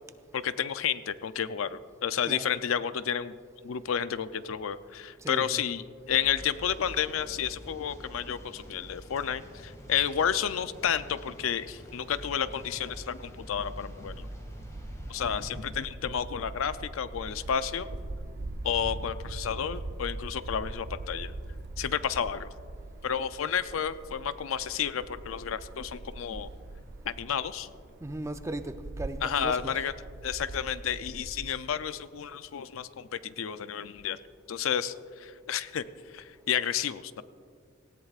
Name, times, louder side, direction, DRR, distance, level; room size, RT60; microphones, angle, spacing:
voice 1, 0.3-3.3 3.6-14.3 15.1-17.9 18.6-21.3 21.8-22.5 23.0-26.5 27.1-27.7 29.2-29.9 30.2-34.2 34.5-35.8 36.1-37.2, left 8 dB, 75° left, 0.5 m, -31 dB
voice 2, 2.2-2.6 5.2-5.6 28.0-29.8, right 1 dB, 15° right, 0.5 m, -37 dB
sound 1, 6.1-15.6, equal, 15° left, 2.0 m, -46 dB
sound 2, 13.9-31.5, right 2 dB, 55° right, 0.6 m, -42 dB
18.0 x 17.0 x 2.4 m
head